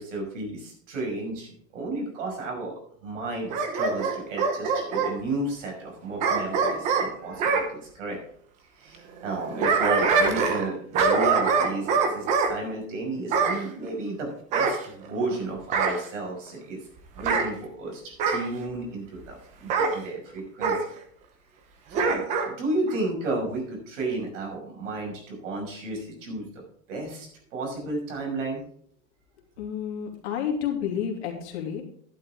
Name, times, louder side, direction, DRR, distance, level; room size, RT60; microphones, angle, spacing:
voice 1, 0.0-8.2 8.8-16.8 17.1-20.9 21.9-26.6 26.9-28.6, right 2 dB, 60° right, 0 dB, 5.9 m, -33 dB
Bark / Growling, 3.5-5.1 6.2-7.7 9.3-10.7 10.9-12.5 13.3-13.6 14.5-15.3 15.7-16.1 17.2-17.5 18.2-18.5 19.7-20.0 20.6-20.8 21.9-22.5 22.9-23.0, right 5 dB, 15° right, 0.8 m, -24 dB
voice 2, 29.6-31.8, left 8 dB, 50° left, 1 dB, 2.7 m, -30 dB
11.5 x 10.5 x 3.7 m, 0.63 s
supercardioid pair, 175°, 42 cm